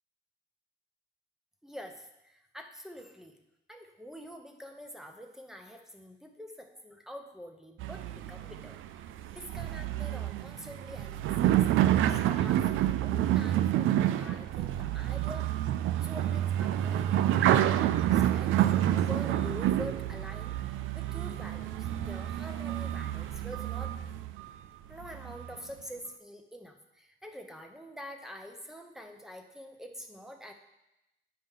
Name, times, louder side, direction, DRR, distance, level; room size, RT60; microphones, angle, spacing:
voice 1, 1.6-3.4 3.7-9.1 9.3-15.5 16.0-24.0 24.9-30.5, equal, ahead, 4 dB, 0.9 m, -46 dB
Volvo wheel loader, 7.8-24.5 25.0-25.6, right 12 dB, 80° right, 0.4 m, -28 dB
8.7 x 5.3 x 3.7 m, 0.90 s
cardioid pair, 90°, 20 cm